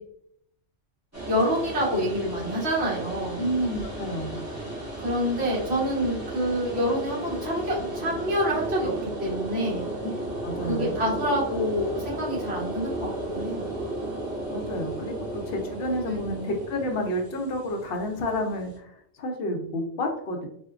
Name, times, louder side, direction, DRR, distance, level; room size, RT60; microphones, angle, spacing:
sound 1, 1.1-18.8, right 1 dB, 15° right, 0.9 m, -34 dB
voice 1, 1.2-3.4 5.0-9.9 10.6-13.6 16.1-16.5, equal, 60° right, -5 dB, 1.4 m, -27 dB
voice 2, 3.4-4.4 10.4-10.9 14.5-18.7 19.2-20.5, equal, 60° left, 3 dB, 0.7 m, -30 dB
4.2 x 2.1 x 2.4 m, 0.71 s
omnidirectional pair, 1.2 m